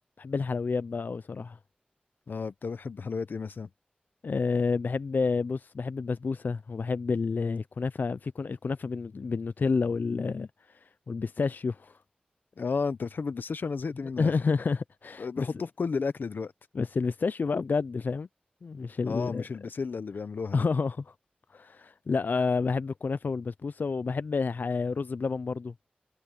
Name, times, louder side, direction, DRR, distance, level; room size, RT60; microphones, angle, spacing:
voice 1, 0.2-1.6 4.2-10.5 11.1-12.0 14.2-15.5 16.7-18.3 18.6-19.4 20.5-21.1 21.5-25.7, left 4 dB, 70° left, 0.4 m, -29 dB
voice 2, 2.3-3.7 12.6-14.4 15.2-16.5 19.0-20.6, left 4 dB, 85° left, 0.8 m, -33 dB
wide cardioid pair, 60°, 3 cm